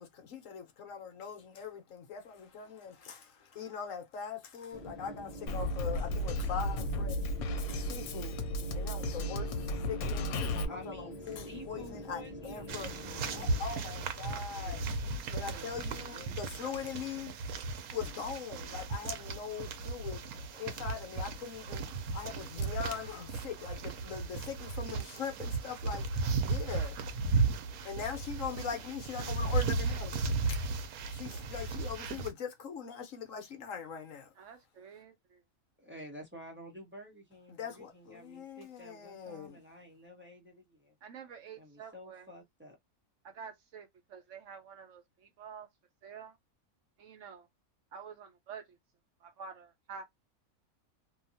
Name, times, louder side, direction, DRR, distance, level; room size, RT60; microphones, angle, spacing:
voice 1, 0.0-7.2 7.6-8.4 8.7-10.4 10.7-14.8 15.3-17.3 17.9-21.8 22.1-26.1 26.5-26.9 27.3-27.4 27.8-30.2 31.1-34.3 37.5-39.6, left 7 dB, 65° left, 1.1 m, -41 dB
sound 1, 4.7-13.6, equal, 30° left, 0.9 m, -45 dB
Drum kit, 5.5-10.6, left 1 dB, 90° left, 1.1 m, -34 dB
voice 2, 10.7-13.5 14.5-16.4 35.8-40.9 41.6-42.8, equal, 10° right, 0.9 m, -51 dB
sound 2, 12.7-32.3, right 4 dB, 85° right, 1.1 m, -35 dB
voice 3, 34.3-35.4 41.0-42.3 43.2-45.7 46.0-46.4 47.0-47.5 47.9-48.8 49.2-50.1, right 6 dB, 65° right, 0.9 m, -48 dB
2.8 x 2.4 x 2.7 m
omnidirectional pair, 1.5 m